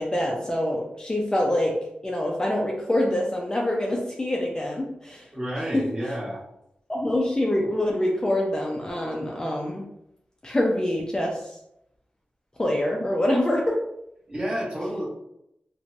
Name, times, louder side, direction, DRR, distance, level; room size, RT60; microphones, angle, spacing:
voice 1, 0.0-1.7 2.0-5.3 5.7-5.8 6.9-9.8 10.4-11.4 12.6-13.8, left 1 dB, 20° left, -1 dB, 0.5 m, -25 dB
voice 2, 5.3-6.4 14.3-15.0, equal, 25° right, -7 dB, 1.4 m, -30 dB
3.0 x 2.2 x 2.6 m, 0.79 s
cardioid pair, 65°, 3 cm